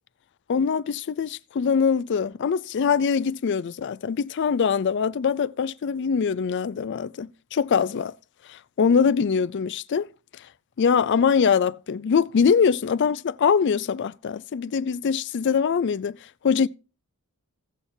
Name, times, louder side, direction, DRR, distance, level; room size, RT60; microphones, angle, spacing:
voice 1, 0.5-8.1 8.5-10.1 10.8-16.2 16.4-16.7, left 6 dB, 50° left, 0.4 m, -23 dB
16.5 x 7.1 x 2.7 m
head